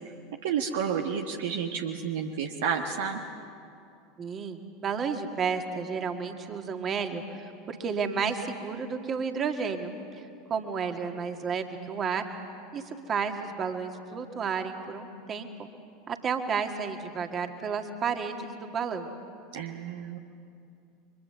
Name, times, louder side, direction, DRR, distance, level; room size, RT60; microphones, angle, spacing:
voice 1, 0.4-3.2 19.5-20.2, right 7 dB, 60° right, 3 dB, 1.3 m, -30 dB
voice 2, 4.2-9.9 10.5-12.3 12.7-15.7 16.1-19.1, right 6 dB, 30° right, 5 dB, 2.1 m, -32 dB
30.0 x 24.5 x 6.9 m, 2.5 s
figure-of-eight pair, 80°, 0 cm